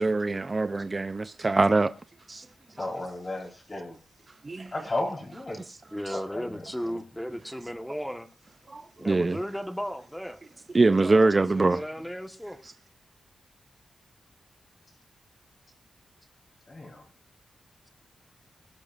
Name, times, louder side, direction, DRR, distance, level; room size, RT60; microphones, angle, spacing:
voice 1, 0.0-1.9 2.3-2.5 2.8-2.9 4.4-4.7 8.7-9.4 10.7-11.8, right 3 dB, 35° right, 0.6 m, -23 dB
voice 2, 2.8-4.0 4.7-5.6 6.1-7.0 16.7-17.1, left 2 dB, 35° left, 4.6 m, -34 dB
voice 3, 5.9-8.3 9.0-10.4 10.9-12.6, equal, 5° left, 1.5 m, -35 dB
20.5 x 12.0 x 2.6 m
cardioid pair, 75°, 0 cm